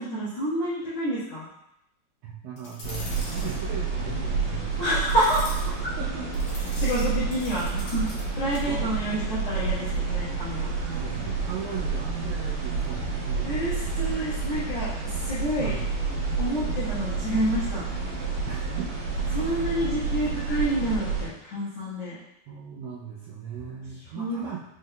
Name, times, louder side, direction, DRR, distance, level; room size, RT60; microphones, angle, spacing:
voice 1, 0.0-1.5 4.8-5.7 6.8-8.1 8.4-10.9 13.4-15.8 16.4-17.9 19.3-22.2 24.1-24.4, right 1 dB, 80° left, -11 dB, 1.4 m, -28 dB
voice 2, 2.2-4.9 6.0-6.5 8.7-8.9 10.9-13.9 15.6-15.9 18.5-18.9 19.2-20.0 22.5-24.7, right 7 dB, 85° right, -5 dB, 2.0 m, -38 dB
sound 1, 2.6-3.6 5.0-5.7 6.3-8.2 8.5-8.7, left 1 dB, 55° left, 2.8 m, -41 dB
sound 2, 2.8-21.3, right 4 dB, 65° right, 2.5 m, -29 dB
6.3 x 3.6 x 2.2 m, 0.82 s
omnidirectional pair, 4.6 m